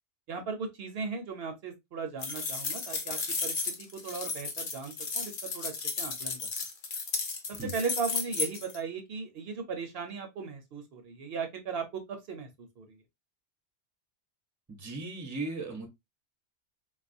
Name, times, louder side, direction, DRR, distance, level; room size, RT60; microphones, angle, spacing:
voice 1, 0.3-6.4 7.5-13.0, right 5 dB, 65° right, 0.8 m, -37 dB
sound 1, 2.2-8.8, left 4 dB, 55° left, 0.8 m, -34 dB
voice 2, 14.7-15.9, right 3 dB, 20° right, 0.6 m, -37 dB
3.6 x 2.3 x 2.5 m
omnidirectional pair, 1.2 m